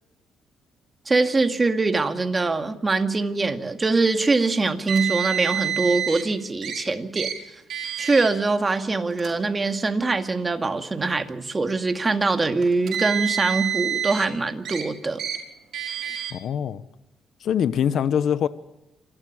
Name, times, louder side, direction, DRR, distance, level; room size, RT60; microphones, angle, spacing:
voice 1, 1.1-7.3 8.0-15.2, right 3 dB, 25° right, 7 dB, 2.1 m, -23 dB
Car, 4.9-6.2 6.6-6.8 7.2-7.3 7.7-8.3 9.1-9.3 10.2-10.3 12.6-14.3 14.7-14.8 15.2-15.4 15.7-16.3, right 10 dB, 70° right, 5.5 m, -28 dB
voice 2, 16.3-16.8 17.4-18.5, left 8 dB, 70° left, 14 dB, 0.9 m, -23 dB
27.5 x 12.5 x 8.7 m, 0.97 s
cardioid pair, 90°, 0 cm